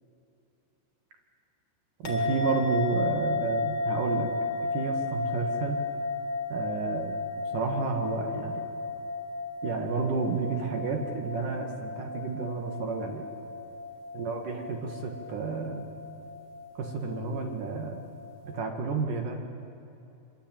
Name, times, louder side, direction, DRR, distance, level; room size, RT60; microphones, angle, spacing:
sound 1, 2.0-18.6, left 3 dB, 35° left, 4.1 m, -34 dB
voice 1, 2.0-4.3 4.7-5.8 6.5-8.7 9.6-13.3 14.1-15.9 16.8-18.0 18.4-19.7, right 4 dB, 55° right, 4 dB, 2.8 m, -31 dB
26.0 x 25.0 x 9.1 m, 2.9 s
omnidirectional pair, 5.5 m